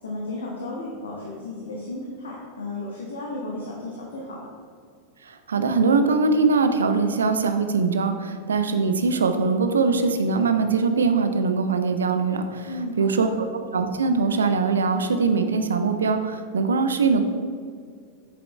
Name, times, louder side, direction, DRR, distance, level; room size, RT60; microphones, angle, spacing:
voice 1, 0.0-4.5 12.7-13.3, left 2 dB, 70° left, -3 dB, 1.2 m, -34 dB
voice 2, 5.2-12.7 13.0-13.5 13.7-17.2, right 4 dB, 70° right, 8 dB, 0.6 m, -22 dB
8.4 x 7.0 x 3.3 m, 2.1 s
figure-of-eight pair, 90°, 0 cm